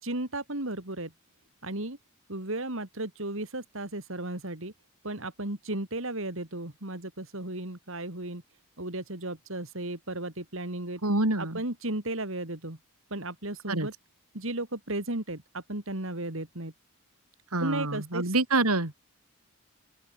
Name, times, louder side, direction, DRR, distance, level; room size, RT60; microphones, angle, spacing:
voice 1, 0.0-1.1 1.6-2.0 2.3-4.7 5.0-8.4 8.8-11.0 11.4-12.8 13.1-13.9 14.3-16.7 17.6-18.3, right 2 dB, 65° right, 3.0 m, -34 dB
voice 2, 11.0-11.6 13.7-13.9 17.5-18.9, right 2 dB, 85° right, 3.5 m, -26 dB
open air
head